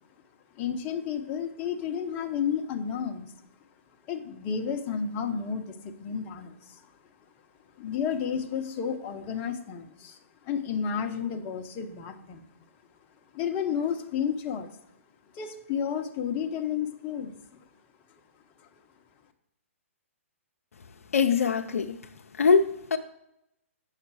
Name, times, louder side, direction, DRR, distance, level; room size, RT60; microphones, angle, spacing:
voice 1, 0.6-3.3 4.1-6.8 7.8-10.2 10.4-12.5 13.3-14.7 15.3-17.3, left 7 dB, 25° left, 1.0 m, -31 dB
voice 2, 21.1-21.9 22.4-23.0, left 5 dB, 80° left, 0.6 m, -22 dB
8.5 x 6.6 x 4.8 m
hypercardioid pair, 140°, 8 cm